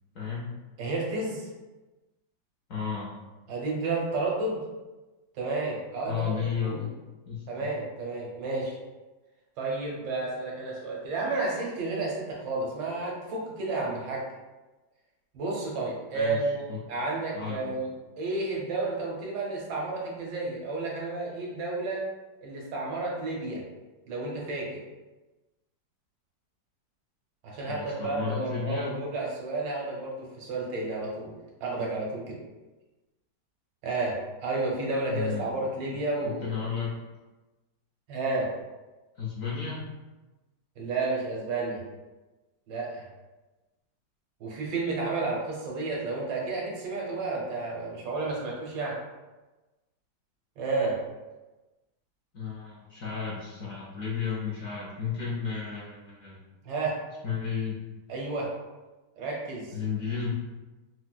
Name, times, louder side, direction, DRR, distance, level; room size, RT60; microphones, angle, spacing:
voice 1, 0.1-0.5 2.7-3.1 6.0-7.0 7.3-7.4 16.1-16.8 17.3-17.7 27.7-28.9 35.1-35.5 35.9-37.0 39.2-39.8 52.3-56.4 57.2-57.8 59.7-60.3, left 6 dB, 65° left, -5 dB, 0.8 m, -33 dB
voice 2, 0.8-1.5 3.5-4.6 5.3-6.3 6.6-6.9 7.5-8.8 9.6-14.2 15.3-16.6 16.9-17.9 18.2-22.0 22.4-23.6 24.1-24.8 27.4-31.3 31.6-32.4 33.8-36.5 38.1-38.5 40.8-41.8 42.7-43.0 44.4-49.0 50.6-51.0 56.6-57.0 58.1-58.5 59.2-59.7, right 3 dB, 90° right, -3 dB, 1.5 m, -31 dB
4.3 x 2.2 x 2.3 m, 1.1 s
omnidirectional pair, 1.9 m